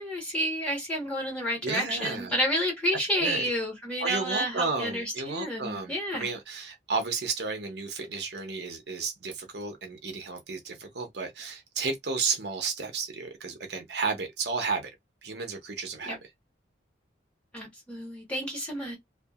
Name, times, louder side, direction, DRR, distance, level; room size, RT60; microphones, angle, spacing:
voice 1, 0.0-6.3 16.1-16.2 17.5-19.0, equal, 5° left, 1.5 m, -30 dB
voice 2, 1.6-2.3 3.2-3.5 4.0-14.9 15.2-16.3, right 4 dB, 65° right, 0.8 m, -33 dB
2.7 x 2.5 x 2.4 m
head